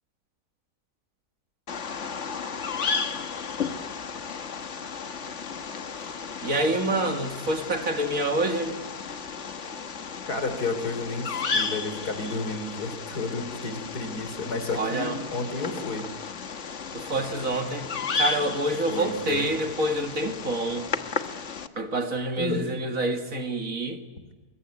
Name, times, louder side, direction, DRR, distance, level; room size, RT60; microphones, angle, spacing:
Bird vocalization bird call bird song, 1.7-21.7, left 5 dB, 50° left, 1.5 m, -34 dB
voice 1, 6.4-8.8 14.7-15.2 16.9-17.9 18.1-20.9 21.8-24.0, right 1 dB, 60° right, 5 dB, 2.6 m, -27 dB
voice 2, 10.2-16.1 18.9-19.5 22.4-22.7, left 3 dB, 80° left, 9 dB, 3.8 m, -31 dB
24.5 x 22.5 x 9.6 m, 1.3 s
omnidirectional pair, 1.7 m